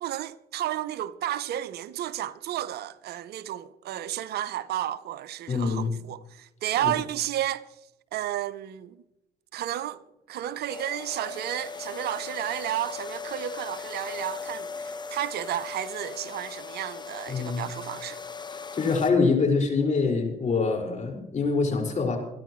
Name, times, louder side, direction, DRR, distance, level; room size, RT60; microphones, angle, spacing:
voice 1, 0.0-7.7 8.1-9.0 9.5-10.0 10.3-18.2, right 12 dB, 65° right, 0.8 m, -32 dB
voice 2, 5.5-5.9 6.8-6.9 17.3-17.7 18.5-22.2, left 4 dB, 45° left, 5.4 m, -25 dB
sound 1, 10.7-19.1, left 5 dB, 25° left, 1.2 m, -38 dB
28.0 x 10.5 x 3.2 m
supercardioid pair, 65°, 18 cm